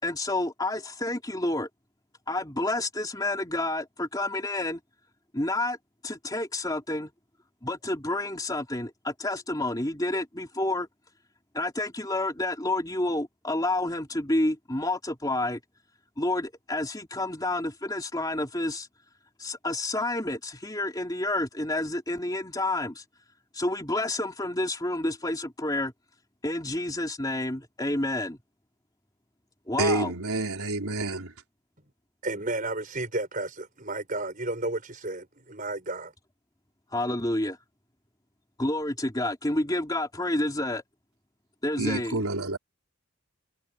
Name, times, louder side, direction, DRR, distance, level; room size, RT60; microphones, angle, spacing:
voice 1, 0.0-1.7 2.3-4.8 5.3-5.8 6.0-7.1 7.6-10.9 11.5-15.6 16.2-18.9 19.4-23.0 23.5-25.9 26.4-28.4 29.7-30.1 36.9-37.6 38.6-40.8 41.6-42.2, left 1 dB, 15° left, 3.1 m, -29 dB
voice 2, 29.8-31.3 41.8-42.6, right 2 dB, 80° right, 3.9 m, -28 dB
voice 3, 32.2-36.1, right 2 dB, 40° right, 5.5 m, -32 dB
head